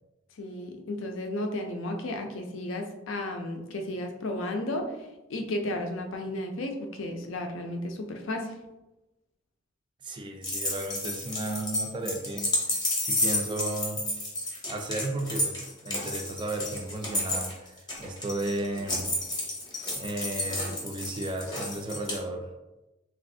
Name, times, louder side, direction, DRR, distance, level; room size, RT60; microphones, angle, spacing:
voice 1, 0.4-8.5, left 1 dB, 70° left, 4 dB, 0.5 m, -33 dB
voice 2, 10.0-14.1 14.7-19.2 20.0-22.5, right 2 dB, 25° right, 3 dB, 0.3 m, -34 dB
sound 1, 10.4-22.2, left 1 dB, 20° left, 0.7 m, -31 dB
3.2 x 2.4 x 2.6 m, 1.0 s
head